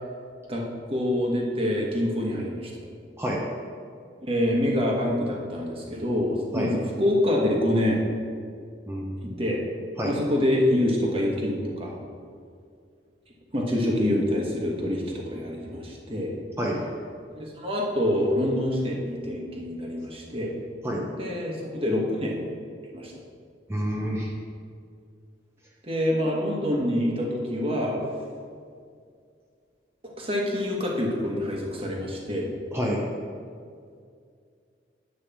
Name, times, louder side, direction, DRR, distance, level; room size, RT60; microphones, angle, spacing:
voice 1, 0.5-2.7 4.2-8.0 9.4-9.6 10.0-12.0 13.5-16.3 17.3-20.5 21.2-22.3 22.9-23.1 25.8-28.0 30.0-32.5, left 1 dB, 30° right, -1 dB, 1.4 m, -26 dB
voice 2, 8.9-9.4 10.0-10.2 16.6-16.8 20.8-21.0 23.7-24.3 32.7-33.1, equal, 15° right, -3 dB, 0.8 m, -28 dB
10.0 x 3.5 x 7.1 m, 2.3 s
head